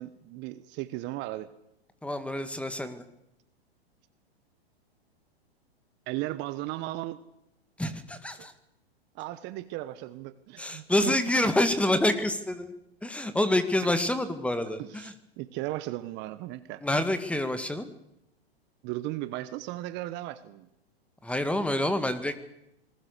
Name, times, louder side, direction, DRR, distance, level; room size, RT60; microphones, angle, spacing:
voice 1, 0.0-1.5 6.1-7.2 8.4-8.5 9.1-11.2 13.8-13.9 14.8-16.8 18.8-20.7, right 16 dB, 35° right, 13 dB, 1.2 m, -36 dB
voice 2, 2.0-3.0 7.8-8.5 10.6-12.7 13.0-15.1 16.8-17.9 21.2-22.4, left 1 dB, 5° left, 10 dB, 1.9 m, -27 dB
27.5 x 20.0 x 6.7 m, 0.82 s
hypercardioid pair, 115°, 32 cm